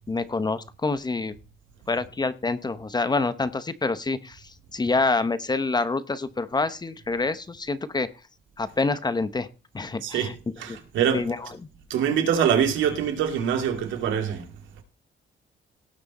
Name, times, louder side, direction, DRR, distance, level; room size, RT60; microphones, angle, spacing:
voice 1, 0.1-1.4 1.9-8.1 8.6-9.5 9.7-10.3 10.7-10.8 11.1-11.6, left 3 dB, 20° left, 0.9 m, -27 dB
voice 2, 10.6-11.2 11.9-14.4, right 8 dB, 90° right, 2.5 m, -24 dB
17.5 x 6.2 x 4.2 m
cardioid pair, 105°, 19 cm